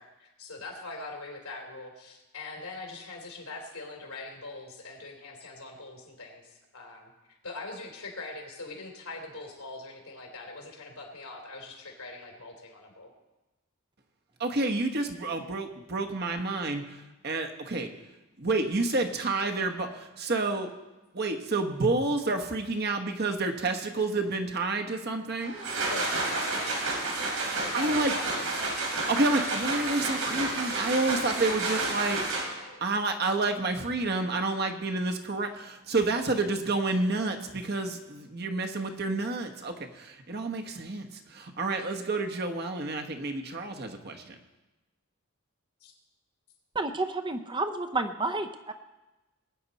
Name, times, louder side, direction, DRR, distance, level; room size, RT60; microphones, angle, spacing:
voice 1, 0.0-7.1 7.4-13.1 25.9-26.8 27.6-28.8 45.8-45.9, left 2 dB, 90° left, 1 dB, 3.3 m, -42 dB
voice 2, 14.4-16.8 17.2-17.9 18.4-20.7 21.1-25.5 27.4-28.1 29.1-32.3 32.8-44.3, right 2 dB, 45° right, 4 dB, 1.2 m, -29 dB
sound 1, 25.4-32.8, right 2 dB, 85° right, 3.3 m, -30 dB
voice 3, 46.7-48.7, right 3 dB, 20° right, 8 dB, 0.6 m, -30 dB
20.5 x 9.4 x 4.2 m, 1.1 s
head